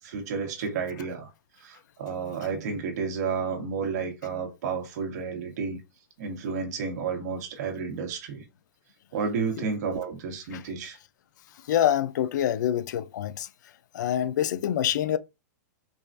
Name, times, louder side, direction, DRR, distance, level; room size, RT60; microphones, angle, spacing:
voice 1, 0.0-1.3 1.6-5.8 6.2-8.4 9.1-11.0, right 5 dB, 60° right, 1.5 m, -31 dB
voice 2, 11.7-13.5 13.9-15.2, left 11 dB, 70° left, 0.4 m, -26 dB
4.8 x 2.4 x 2.6 m
hypercardioid pair, 155°, 10 cm